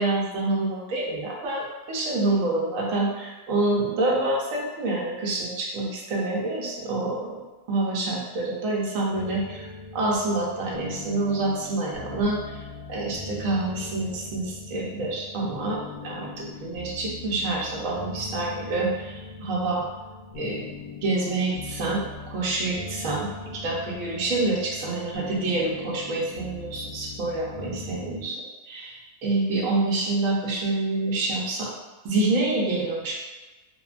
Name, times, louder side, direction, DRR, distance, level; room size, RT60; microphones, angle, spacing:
voice 1, 0.0-7.4 7.7-9.7 9.9-12.4 12.9-19.8 20.4-28.4 28.7-31.7 32.0-33.2, right 2 dB, 70° right, -3 dB, 1.0 m, -27 dB
sound 1, 9.1-28.3, left 3 dB, 75° left, 1.2 m, -40 dB
3.4 x 2.0 x 2.4 m, 1.2 s
omnidirectional pair, 1.5 m